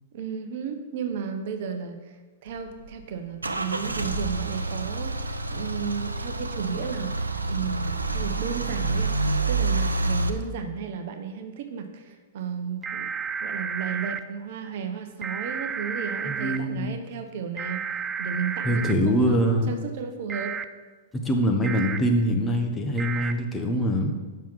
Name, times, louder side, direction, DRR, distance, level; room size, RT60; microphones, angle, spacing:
voice 1, 0.1-2.0 2.4-7.2 7.5-9.1 9.5-13.1 13.4-20.6, right 6 dB, 55° right, 7 dB, 0.8 m, -33 dB
Car / Engine starting / Idling, 2.5-10.3, right 3 dB, 85° right, 0.6 m, -28 dB
sound 1, 12.8-14.2 15.2-16.6 17.6-18.9 20.3-20.6 21.6-22.0 23.0-23.3, right 6 dB, 15° right, 0.4 m, -31 dB
voice 2, 16.2-16.9 18.6-19.7 21.1-24.1, equal, 15° left, 3 dB, 1.1 m, -24 dB
7.3 x 5.7 x 5.9 m, 1.3 s
figure-of-eight pair, 105°, 0 cm